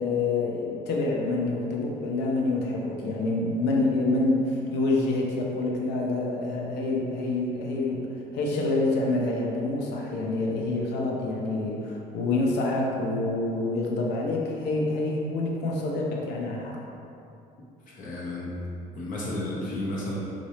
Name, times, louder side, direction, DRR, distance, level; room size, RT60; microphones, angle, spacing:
voice 1, 0.0-16.8, left 2 dB, 85° left, -1 dB, 0.6 m, -27 dB
voice 2, 17.9-18.5 18.9-20.2, left 1 dB, 50° left, -5 dB, 1.0 m, -32 dB
4.0 x 2.6 x 3.2 m, 2.6 s
cardioid pair, 110°, 17 cm